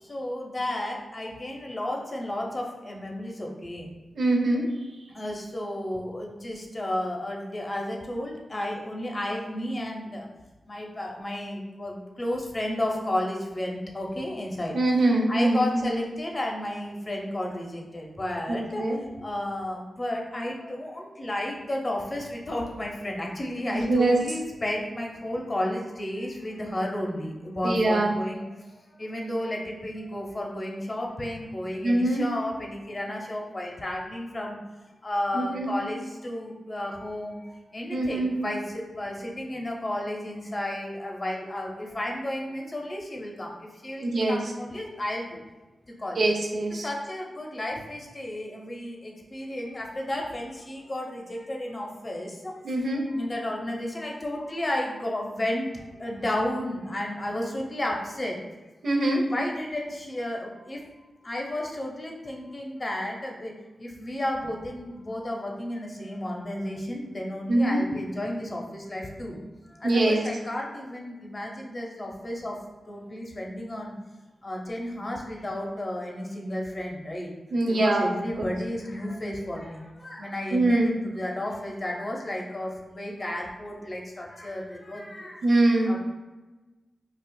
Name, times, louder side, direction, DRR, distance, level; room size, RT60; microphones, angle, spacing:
voice 1, 0.0-3.9 5.1-10.3 10.7-14.8 15.3-34.6 35.0-45.4 45.9-46.3 46.7-52.6 52.9-58.4 59.3-60.8 61.2-63.5 63.8-69.4 69.7-72.6 72.9-73.9 74.4-77.3 77.6-85.5 85.9-86.0, left 1 dB, 40° left, 0 dB, 0.7 m, -32 dB
voice 2, 4.1-4.6 14.7-15.9 18.5-19.0 23.7-24.2 27.6-28.1 31.8-32.2 35.3-35.7 37.9-38.3 44.0-44.4 46.2-46.9 52.6-53.0 58.8-59.2 67.5-67.8 69.8-70.2 77.5-78.1 80.5-80.9 85.4-85.9, right 2 dB, 75° right, -1 dB, 0.6 m, -23 dB
4.2 x 2.3 x 2.2 m, 1.2 s
supercardioid pair, 40°, 0 cm